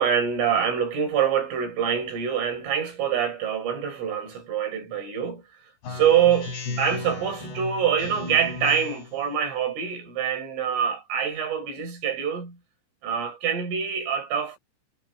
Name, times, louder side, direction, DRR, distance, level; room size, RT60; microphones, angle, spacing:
voice 1, 0.0-5.4 5.9-12.6 13.0-14.6, right 8 dB, 75° right, 7.2 m, -25 dB
Speech synthesizer, 5.8-9.2, left 3 dB, 55° left, 9.0 m, -35 dB
omnidirectional pair, 5.7 m